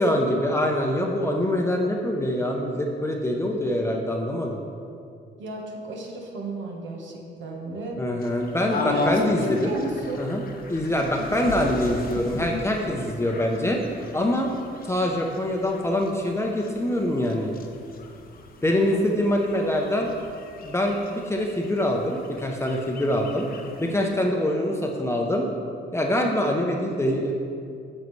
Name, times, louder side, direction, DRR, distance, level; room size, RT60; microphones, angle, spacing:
voice 1, 0.0-4.6 8.0-9.8 10.2-10.4 10.7-13.8 14.1-14.5 14.8-17.5 18.6-20.1 20.6-23.5 23.8-25.5 25.9-27.3, left 1 dB, 15° left, 0 dB, 0.8 m, -24 dB
voice 2, 5.4-8.0 8.8-10.3 18.7-19.2 23.8-24.1, right 1 dB, 70° right, 0 dB, 1.4 m, -33 dB
sound 1, 8.2-24.1, left 3 dB, 50° left, 0.9 m, -37 dB
9.3 x 6.5 x 3.2 m, 2.4 s
cardioid pair, 90°, 20 cm